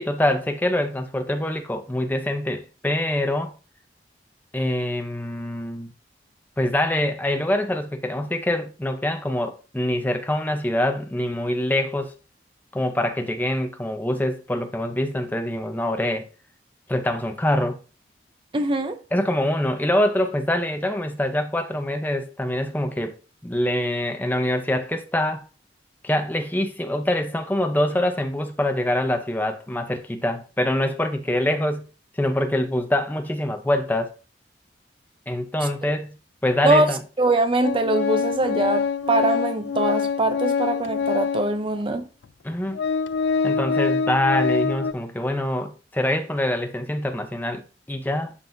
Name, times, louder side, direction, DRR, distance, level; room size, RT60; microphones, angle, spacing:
voice 1, 0.0-3.5 4.5-5.9 6.6-12.1 12.7-16.3 16.9-17.8 19.1-23.2 23.4-25.5 26.0-31.9 32.2-34.1 35.3-36.1 36.4-37.0 42.4-42.8 43.4-48.3, left 1 dB, 10° left, 0.7 m, -24 dB
voice 2, 18.5-19.0 36.6-42.1, right 2 dB, 30° right, 0.6 m, -22 dB
Organ, 37.6-41.6 42.2-42.3 42.7-44.9, left 5 dB, 90° left, 0.4 m, -25 dB
11.0 x 4.1 x 2.7 m
head